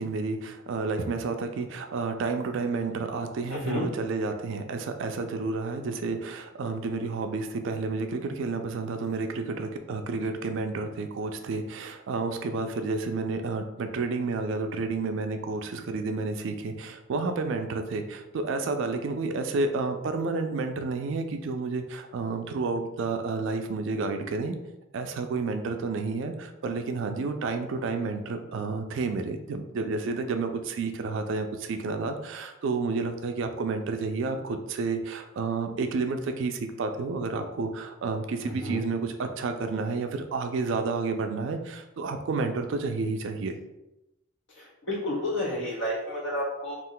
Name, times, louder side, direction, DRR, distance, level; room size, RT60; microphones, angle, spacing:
voice 1, 0.0-24.6 24.9-43.6, right 3 dB, 60° right, 6 dB, 0.3 m, -30 dB
voice 2, 3.5-3.9 38.4-38.8 44.6-46.7, left 1 dB, 60° left, -4 dB, 1.0 m, -31 dB
2.4 x 2.1 x 3.7 m, 0.94 s
head